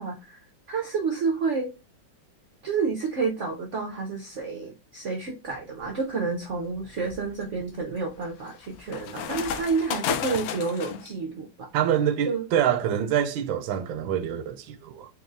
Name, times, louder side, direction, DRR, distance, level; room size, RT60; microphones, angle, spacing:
voice 1, 0.0-1.7 2.6-11.7 12.3-12.5, right 4 dB, 70° right, 0.7 m, -30 dB
sound 1, 5.5-5.9 6.5-11.1, left 8 dB, 85° left, 0.8 m, -33 dB
voice 2, 11.7-15.1, right 9 dB, 90° right, 1.4 m, -26 dB
4.2 x 3.2 x 2.4 m
omnidirectional pair, 2.1 m